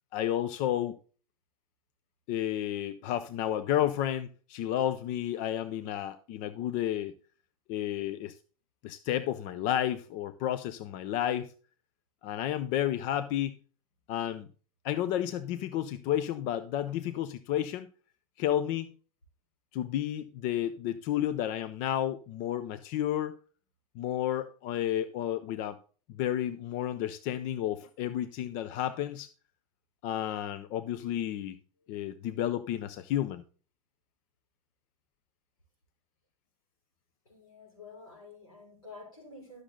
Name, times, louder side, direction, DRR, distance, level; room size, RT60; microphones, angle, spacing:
voice 1, 0.1-1.0 2.3-7.1 7.7-8.4 8.8-11.5 12.2-13.6 14.1-14.5 14.8-17.9 18.4-18.9 19.7-23.4 24.0-25.8 26.2-29.3 30.0-31.6 31.9-33.4, left 11 dB, 50° left, 0.6 m, -31 dB
voice 2, 37.3-39.6, left 3 dB, 85° left, 5.2 m, -49 dB
12.0 x 6.5 x 3.8 m
hypercardioid pair, 90°, 18 cm